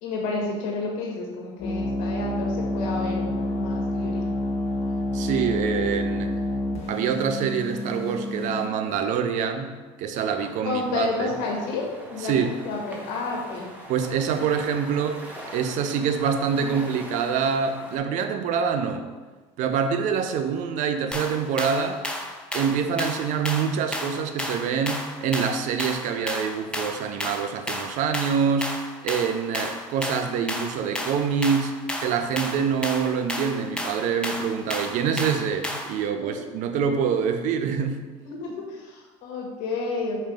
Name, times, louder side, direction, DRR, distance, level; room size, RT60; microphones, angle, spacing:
voice 1, 0.0-4.2 8.9-9.0 10.6-12.3 12.6-13.7 36.2-36.4 38.2-40.3, left 3 dB, 70° left, -1 dB, 1.7 m, -30 dB
sound 1, 1.6-8.7, left 1 dB, 50° left, 1.2 m, -28 dB
voice 2, 5.1-6.4 6.9-9.7 10.0-11.3 12.2-12.6 13.9-15.2 15.5-19.1 19.6-22.0 22.5-28.7 29.0-31.7 32.0-38.0, right 6 dB, 60° right, 7 dB, 0.7 m, -25 dB
sound 2, 10.1-18.0, equal, 10° right, 1.5 m, -42 dB
sound 3, 21.1-36.0, left 1 dB, 5° left, 0.8 m, -32 dB
5.4 x 3.4 x 5.1 m, 1.3 s
supercardioid pair, 100°, 14 cm